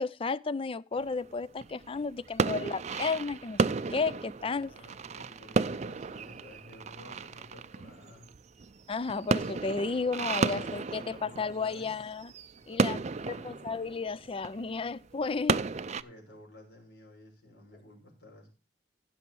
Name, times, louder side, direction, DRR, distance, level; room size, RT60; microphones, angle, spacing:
voice 1, 0.0-4.7 8.9-12.3 12.7-15.6, left 4 dB, 30° left, 0.4 m, -33 dB
sound 1, 0.9-16.0, right 4 dB, 40° right, 0.5 m, -33 dB
voice 2, 4.4-8.3 10.3-12.0 12.5-13.6 15.9-18.5, left 1 dB, 75° left, 5.9 m, -52 dB
15.5 x 6.2 x 4.6 m
head